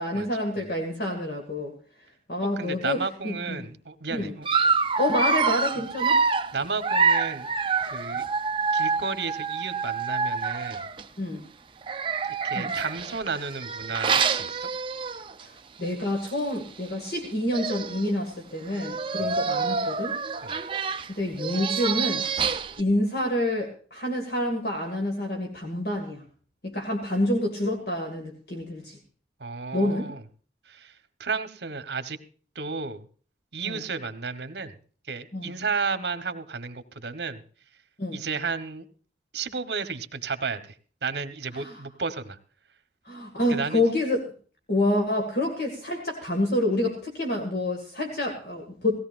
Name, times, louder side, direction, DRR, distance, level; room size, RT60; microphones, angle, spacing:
voice 1, 0.0-1.7 2.3-3.7 4.1-4.3 5.0-6.2 11.2-11.4 12.5-12.7 15.4-20.1 21.1-26.2 26.6-29.0 29.7-30.1 33.6-33.8 35.3-35.5 38.0-38.2 41.5-41.8 43.1-44.2 44.7-49.0, left 1 dB, 60° left, 3 dB, 2.0 m, -28 dB
voice 2, 2.6-4.5 6.5-7.5 7.8-8.2 8.7-10.8 12.4-14.7 19.2-19.3 20.4-20.6 29.4-30.2 30.7-30.9 31.2-32.2 32.5-33.0 33.5-34.7 35.0-37.4 38.1-38.9 39.3-40.7 41.0-42.4 43.5-43.8, right 4 dB, 70° right, 10 dB, 1.2 m, -32 dB
Dog, 4.4-11.0 11.8-15.4 15.8-16.0 16.3-16.4 17.2-17.3 17.5-18.1 18.7-22.8, right 5 dB, 30° right, 0.6 m, -27 dB
18.0 x 16.0 x 2.5 m, 0.41 s
head